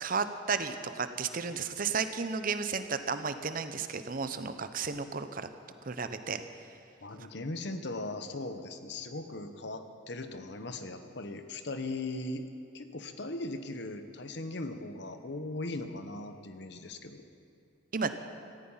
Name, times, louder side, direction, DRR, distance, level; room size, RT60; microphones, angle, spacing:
voice 1, 0.0-5.5 5.8-6.4 17.9-18.1, right 5 dB, 45° right, 10 dB, 0.8 m, -33 dB
voice 2, 7.0-12.5 12.7-17.2, left 2 dB, 60° left, 8 dB, 1.0 m, -39 dB
17.5 x 14.5 x 5.6 m, 2.5 s
head